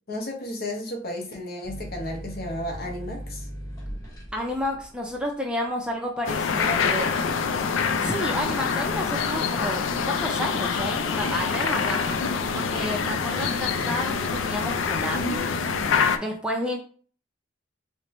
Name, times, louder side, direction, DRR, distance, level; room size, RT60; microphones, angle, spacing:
voice 1, 0.1-3.5, left 1 dB, 50° left, 0.8 m, -33 dB
sound 1, 1.6-8.9 9.3-10.1, equal, 20° left, 0.9 m, -40 dB
voice 2, 4.3-7.1 8.0-12.0 12.5-15.5 16.2-16.8, left 1 dB, 5° right, 0.4 m, -30 dB
sound 2, 6.3-16.2, left 5 dB, 85° left, 0.4 m, -26 dB
sound 3, 9.9-16.0, right 5 dB, 75° right, 0.5 m, -43 dB
4.4 x 2.1 x 3.0 m
head